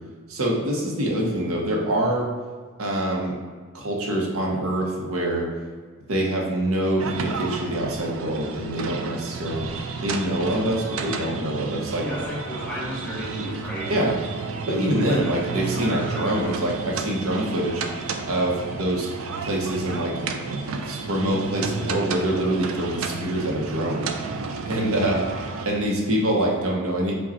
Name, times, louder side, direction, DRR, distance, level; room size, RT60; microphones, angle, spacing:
voice 1, 0.3-2.3 2.8-3.3 3.7-5.5 6.1-9.7 10.0-12.0 13.9-14.2 14.7-17.8 18.2-19.1 19.4-20.1 20.9-24.1 24.7-25.2 25.6-27.1, right 1 dB, 90° right, -2 dB, 0.8 m, -25 dB
sound 1, 7.0-25.7, right 4 dB, 70° right, 0.4 m, -32 dB
Mechanical fan, 11.2-26.6, left 3 dB, 25° left, 0.4 m, -46 dB
voice 2, 12.0-13.9 14.6-16.6 23.9-24.6, left 1 dB, 5° left, -6 dB, 1.2 m, -35 dB
5.0 x 2.3 x 4.0 m, 1.5 s
head